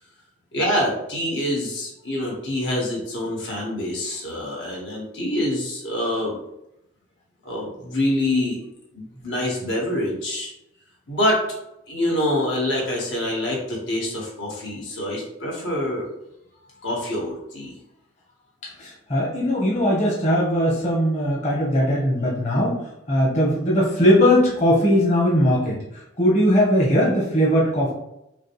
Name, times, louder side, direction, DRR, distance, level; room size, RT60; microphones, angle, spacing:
voice 1, 0.5-6.4 7.4-8.6 8.9-10.5 11.1-11.4 11.9-16.1 16.8-17.7, left 1 dB, 80° left, -3 dB, 1.4 m, -25 dB
voice 2, 18.8-22.8 23.1-25.8 26.2-27.9, equal, 40° left, -4 dB, 1.0 m, -19 dB
5.8 x 2.2 x 3.1 m, 0.84 s
head